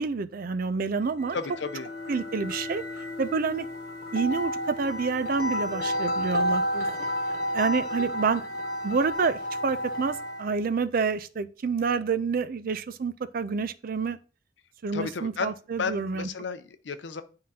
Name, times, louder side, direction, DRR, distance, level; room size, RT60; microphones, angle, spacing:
voice 1, 0.0-1.4 2.1-2.8 3.2-3.7 4.1-7.1 7.5-8.4 8.8-14.2 14.8-16.3, right 5 dB, 50° right, 0.4 m, -28 dB
sound 1, 1.1-10.6, left 1 dB, 55° left, 1.1 m, -31 dB
voice 2, 1.3-1.9 14.9-15.5 15.8-17.2, left 5 dB, 70° left, 0.6 m, -33 dB
9.5 x 3.8 x 2.8 m
head